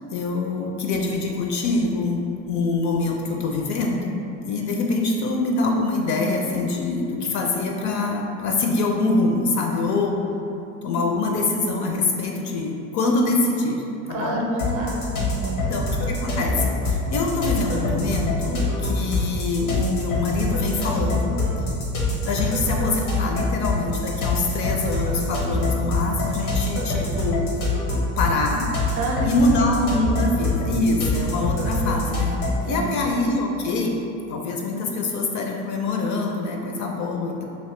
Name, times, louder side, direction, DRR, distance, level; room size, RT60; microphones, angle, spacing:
voice 1, 0.1-10.2 10.8-14.5 15.7-21.4 22.2-27.4 28.2-28.7 29.2-34.0 34.3-37.4, left 3 dB, 45° left, 1 dB, 0.4 m, -24 dB
voice 2, 14.1-15.7 29.0-29.3 30.2-30.3 32.7-33.0, right 2 dB, 45° right, -1 dB, 0.6 m, -29 dB
sound 1, 14.6-32.7, left 2 dB, 80° left, 0.9 m, -25 dB
2.8 x 2.7 x 3.1 m, 2.7 s
hypercardioid pair, 75°, 44 cm